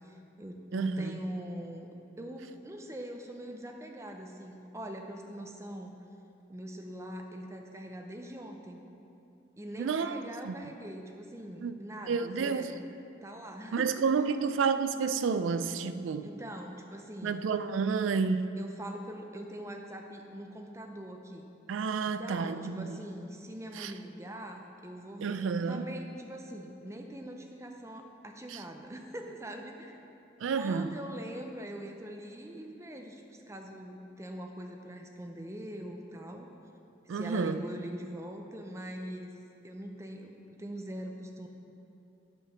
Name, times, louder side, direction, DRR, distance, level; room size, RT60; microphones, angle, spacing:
voice 1, 0.0-1.9 2.2-5.9 6.5-8.8 9.6-12.9 13.2-14.0 14.3-14.5 16.2-17.4 18.6-21.5 22.2-30.0 30.6-36.5 37.0-39.3 39.6-41.5, right 1 dB, 15° right, 0.5 m, -42 dB
voice 2, 0.7-1.2 9.8-10.6 11.6-11.7 12.1-12.7 13.7-16.3 17.2-18.6 21.7-23.0 23.7-23.9 25.2-25.9 28.5-28.6 30.4-30.9 37.1-37.6, right 5 dB, 80° right, 0.3 m, -30 dB
8.4 x 5.0 x 5.7 m
head